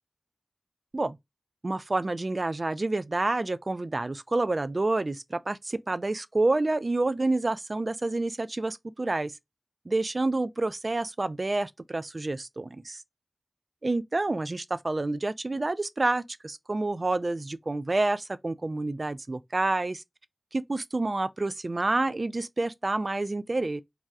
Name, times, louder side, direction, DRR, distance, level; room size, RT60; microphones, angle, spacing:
voice 1, 1.6-9.3 9.9-13.0 13.8-20.0 20.5-23.8, right 2 dB, 55° right, 0.3 m, -28 dB
3.3 x 2.3 x 2.5 m
wide cardioid pair, 40°, 0 cm